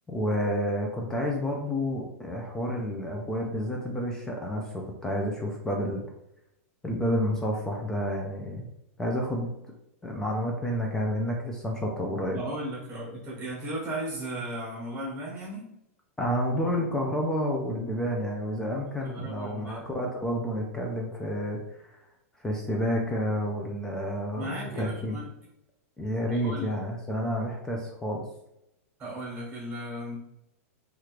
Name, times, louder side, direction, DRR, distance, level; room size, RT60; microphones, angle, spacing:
voice 1, 0.1-6.0 6.8-8.7 9.0-9.5 10.0-12.4 16.2-21.9 22.4-25.2 26.0-28.2, equal, 5° left, 0 dB, 0.4 m, -30 dB
voice 2, 12.3-15.7 19.0-19.9 24.3-25.3 26.3-26.8 29.0-30.2, right 1 dB, 15° right, -5 dB, 1.2 m, -36 dB
3.0 x 2.4 x 3.0 m, 0.82 s
supercardioid pair, 150°, 8 cm